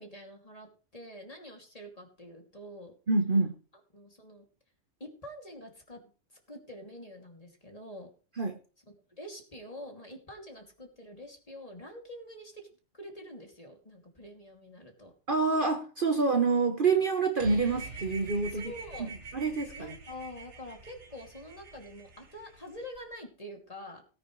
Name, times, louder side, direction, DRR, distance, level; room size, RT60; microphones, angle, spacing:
voice 1, 0.0-3.0 3.9-4.5 5.0-6.0 6.5-8.1 9.2-12.7 12.9-15.1 18.5-19.1 19.7-24.0, equal, 25° left, 2 dB, 2.7 m, -46 dB
voice 2, 3.1-3.5 8.4-8.6 15.3-18.6 19.0-20.0, right 4 dB, 45° right, 5 dB, 1.2 m, -27 dB
sound 1, 17.4-23.0, right 4 dB, 60° right, 1.5 m, -46 dB
18.0 x 9.6 x 3.2 m, 0.37 s
omnidirectional pair, 1.4 m